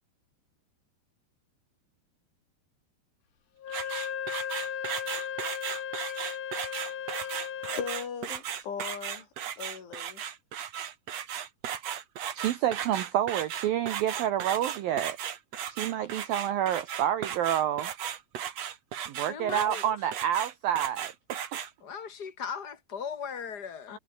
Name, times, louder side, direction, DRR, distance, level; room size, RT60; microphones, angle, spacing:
Wind instrument woodwind instrument, 3.6-8.1, left 8 dB, 55° left, 4.2 m, -36 dB
sound 1, 3.7-21.7, right 9 dB, 55° right, 1.8 m, -36 dB
voice 1, 7.7-9.3 9.6-10.2 23.9-24.0, left 7 dB, 75° left, 7.1 m, -38 dB
voice 2, 12.4-15.2 15.7-17.9 19.1-21.4, right 11 dB, 75° right, 2.2 m, -28 dB
voice 3, 19.3-19.8 21.8-24.0, left 6 dB, 25° left, 3.1 m, -38 dB
omnidirectional pair, 5.5 m